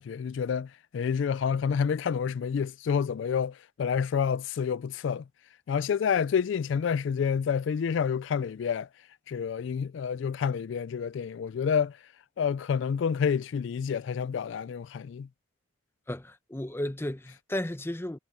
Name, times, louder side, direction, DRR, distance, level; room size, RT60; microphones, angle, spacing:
voice 1, 0.0-5.2 5.7-8.9 9.3-12.0 12.4-15.3, left 7 dB, 65° left, 0.3 m, -28 dB
voice 2, 16.1-18.2, left 1 dB, 10° left, 0.7 m, -34 dB
head